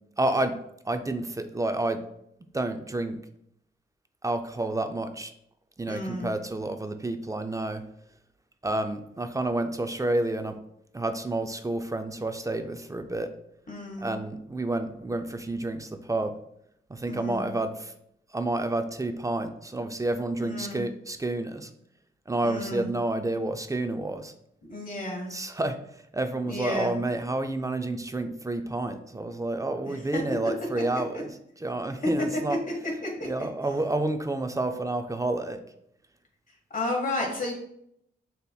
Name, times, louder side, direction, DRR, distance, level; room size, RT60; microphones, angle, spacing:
voice 1, 0.2-0.6 0.9-2.0 2.5-3.2 4.2-5.3 5.8-7.8 8.6-10.6 10.9-13.3 14.0-16.3 16.9-17.9 18.3-21.7 22.3-24.3 25.3-25.8 26.1-31.3 31.6-32.6 33.2-35.6, right 2 dB, 15° right, 8 dB, 0.4 m, -29 dB
voice 2, 5.9-6.3 13.7-14.1 17.1-17.5 20.4-20.8 22.4-22.9 24.7-25.3 26.4-26.9 29.8-30.2 32.0-32.1 33.0-33.3 36.7-37.5, left 2 dB, 40° left, 0 dB, 1.5 m, -32 dB
6.6 x 2.9 x 2.3 m, 0.74 s
cardioid pair, 75°, 20 cm